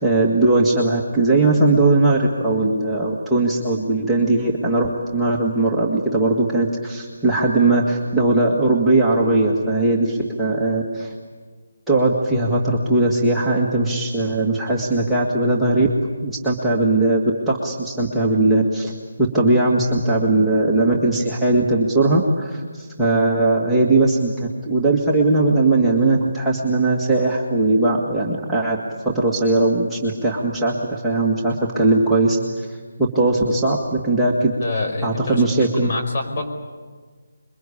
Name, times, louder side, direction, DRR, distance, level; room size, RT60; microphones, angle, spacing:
voice 1, 0.0-11.1 11.9-15.9 16.2-24.3 24.7-28.8 29.0-32.7 33.0-34.5 35.0-35.9, right 2 dB, 5° right, -5 dB, 1.8 m, -19 dB
voice 2, 34.6-35.4 35.8-36.6, left 2 dB, 45° left, 2 dB, 5.2 m, -26 dB
26.5 x 23.0 x 8.5 m, 1.5 s
figure-of-eight pair, 155°, 0 cm